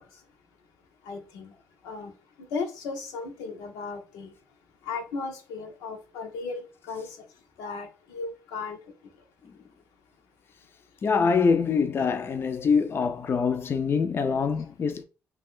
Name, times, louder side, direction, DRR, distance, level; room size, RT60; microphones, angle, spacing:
voice 1, 1.0-1.5 1.8-2.1 2.4-4.3 4.8-7.2 7.6-8.8, left 4 dB, 85° left, 0.6 m, -36 dB
voice 2, 11.0-15.0, left 5 dB, 40° left, 0.3 m, -24 dB
2.4 x 2.2 x 3.5 m
supercardioid pair, 65°, 6 cm